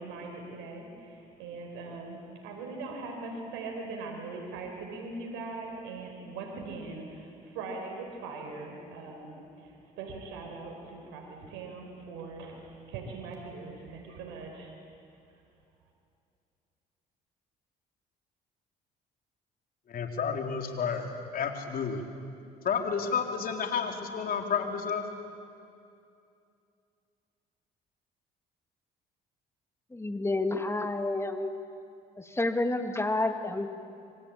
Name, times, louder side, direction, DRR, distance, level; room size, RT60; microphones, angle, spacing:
voice 1, 0.0-14.7, right 3 dB, 85° right, 1 dB, 4.6 m, -41 dB
voice 2, 19.9-22.0 22.6-25.0, left 6 dB, 55° left, 3 dB, 3.8 m, -31 dB
voice 3, 29.9-31.5 32.2-33.7, left 2 dB, 15° left, 6 dB, 2.5 m, -29 dB
27.5 x 24.5 x 8.8 m, 2.5 s
supercardioid pair, 75°, 18 cm